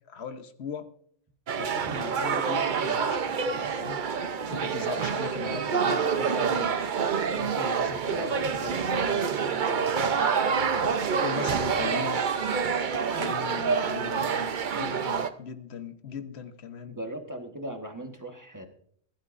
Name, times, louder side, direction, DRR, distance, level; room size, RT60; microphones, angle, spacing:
voice 1, 0.1-0.9 1.5-4.0 4.5-6.9 7.3-10.1 11.1-12.2 13.1-17.0, left 6 dB, 65° left, 10 dB, 1.2 m, -39 dB
sound 1, 1.5-15.3, right 6 dB, 50° right, 0.8 m, -27 dB
voice 2, 16.9-18.7, right 1 dB, 15° right, 4 dB, 1.3 m, -38 dB
20.5 x 12.0 x 2.5 m, 0.64 s
omnidirectional pair, 1.2 m